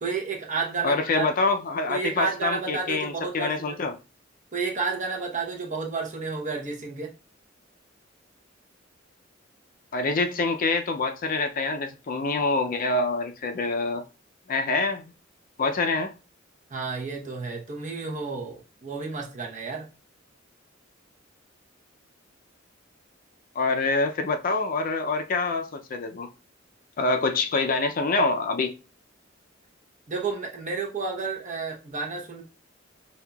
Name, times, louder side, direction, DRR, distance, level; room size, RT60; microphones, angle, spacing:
voice 1, 0.0-1.3 1.9-3.8 4.5-7.1 16.7-19.9 30.1-32.4, right 4 dB, 40° right, 0 dB, 0.9 m, -31 dB
voice 2, 0.8-4.0 9.9-14.0 14.5-15.1 15.6-16.1 23.5-26.3 27.0-28.7, left 3 dB, 45° left, 6 dB, 0.5 m, -26 dB
5.3 x 2.7 x 2.3 m, 0.31 s
head